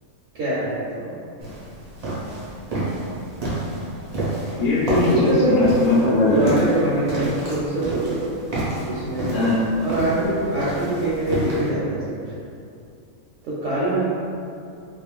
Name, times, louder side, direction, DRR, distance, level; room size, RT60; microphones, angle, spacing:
voice 1, 0.3-1.1 5.1-5.6 6.3-8.2 8.9-9.5 9.8-12.3 13.4-14.0, right 1 dB, 70° right, -8 dB, 0.9 m, -24 dB
sound 1, 1.4-11.7, right 1 dB, 50° right, 0.5 m, -29 dB
voice 2, 4.6-6.5 9.3-9.6, left 2 dB, 55° left, -7 dB, 0.6 m, -19 dB
2.5 x 2.1 x 3.0 m, 2.6 s
omnidirectional pair, 1.5 m